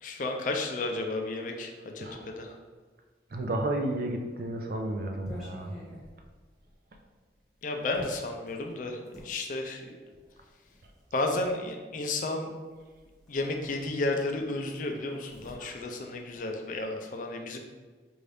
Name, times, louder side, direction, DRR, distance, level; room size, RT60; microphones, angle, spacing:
voice 1, 0.0-2.6 7.6-9.8 11.1-12.5 13.3-17.6, left 2 dB, 45° left, 3 dB, 0.4 m, -32 dB
voice 2, 2.0-2.6 3.3-5.8 15.6-15.7, right 1 dB, 50° right, 4 dB, 0.4 m, -33 dB
sound 1, 4.0-9.3 10.2-11.6 12.8-12.9 13.2-14.4 14.6-16.9, equal, ahead, 0.9 m, -48 dB
4.6 x 2.6 x 3.3 m, 1.4 s
head